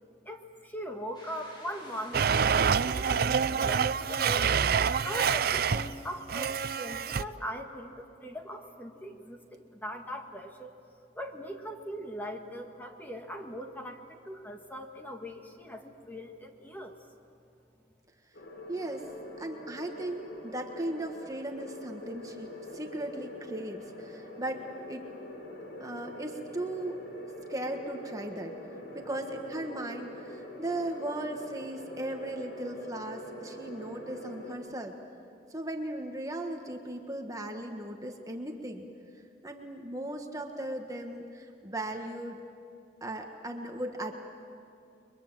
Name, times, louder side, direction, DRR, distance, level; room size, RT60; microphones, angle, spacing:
voice 1, 0.3-4.6 5.0-10.7 11.2-16.9, equal, 10° left, 3 dB, 1.8 m, -40 dB
sound 1, 1.1-6.2, equal, 25° left, 6.7 m, -53 dB
Domestic sounds home sounds, 2.1-5.9 6.3-7.2, right 6 dB, 55° right, 0.5 m, -27 dB
sound 2, 18.3-34.6, left 1 dB, 70° left, 3.8 m, -44 dB
voice 2, 18.7-25.1 25.8-28.5 28.9-34.9 35.5-38.9 39.4-42.4 43.0-44.1, right 1 dB, 20° right, 3 dB, 1.5 m, -37 dB
30.0 x 23.0 x 7.6 m, 2.4 s
head